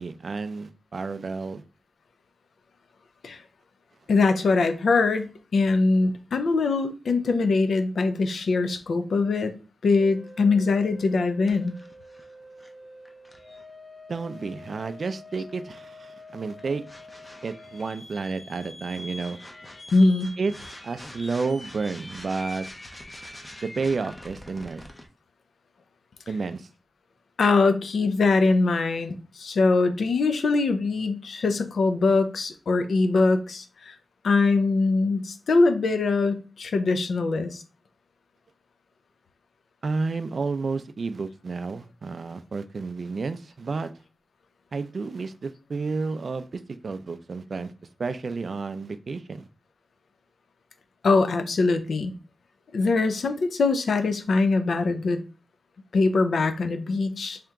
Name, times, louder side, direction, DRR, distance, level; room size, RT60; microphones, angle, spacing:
voice 1, 0.0-1.6 14.1-16.8 17.4-19.4 20.4-22.7 23.6-24.8 26.3-26.7 39.8-43.9 44.7-47.7 48.0-49.5, right 4 dB, 50° right, 0.3 m, -31 dB
voice 2, 4.1-9.6 9.8-11.7 19.9-20.3 27.4-33.9 34.2-37.6 51.0-52.1 52.7-55.2 55.9-57.4, left 3 dB, 75° left, 0.5 m, -22 dB
sound 1, 10.0-25.1, left 1 dB, 15° left, 0.5 m, -44 dB
3.4 x 2.9 x 3.5 m
wide cardioid pair, 160°, 0 cm